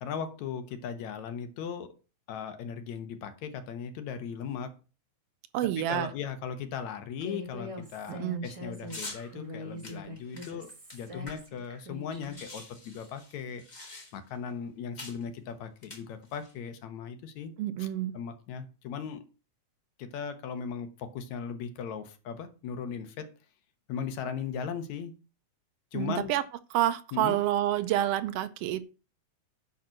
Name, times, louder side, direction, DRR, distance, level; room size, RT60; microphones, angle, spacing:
voice 1, 0.0-1.9 2.3-4.7 5.8-13.9 14.1-17.5 17.8-17.9 18.1-19.2 20.0-23.3 23.9-25.1 25.9-26.3 27.1-27.4, left 7 dB, 70° left, 2.4 m, -38 dB
voice 2, 5.5-6.1 8.1-8.5 17.6-18.1 25.9-26.4 26.7-28.9, right 13 dB, 85° right, 1.4 m, -28 dB
Human voice, 7.2-12.4, equal, 30° right, 0.6 m, -43 dB
sound 1, 8.9-9.2 9.8-11.7 11.9-12.0 12.2-14.4 15.0-15.2 15.8-16.5, left 2 dB, 15° left, 1.7 m, -45 dB
10.5 x 4.2 x 6.4 m
omnidirectional pair, 3.5 m